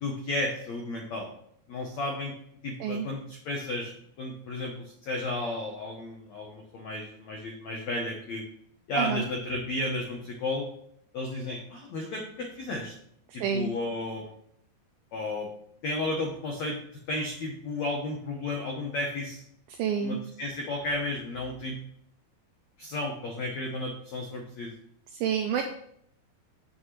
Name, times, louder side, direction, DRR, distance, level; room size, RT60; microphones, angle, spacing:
voice 1, 0.0-1.3 1.7-2.3 2.6-8.4 8.9-10.6 11.1-12.9 13.3-14.3 15.1-15.5 15.8-16.8 17.1-19.4 20.0-21.8 22.8-24.7, left 2 dB, 85° left, 0 dB, 1.5 m, -33 dB
voice 2, 13.4-13.7 19.8-20.2 25.2-25.6, right 7 dB, 85° right, 4 dB, 2.1 m, -28 dB
7.9 x 7.6 x 3.2 m, 0.69 s
omnidirectional pair, 4.8 m